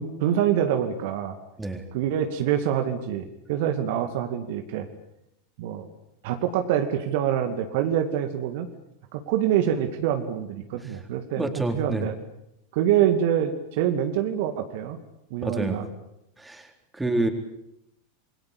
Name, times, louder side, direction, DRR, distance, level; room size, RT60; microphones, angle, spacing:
voice 1, 0.0-1.3 1.9-4.9 5.6-5.9 6.2-8.7 9.1-11.5 11.7-12.1 12.7-15.0 15.3-15.9, right 10 dB, 50° right, 6 dB, 2.4 m, -25 dB
voice 2, 11.4-12.1 15.4-15.8 16.4-16.7 16.9-17.3, right 2 dB, 10° right, 5 dB, 4.1 m, -27 dB
28.0 x 23.0 x 8.6 m, 0.80 s
figure-of-eight pair, 90°, 0 cm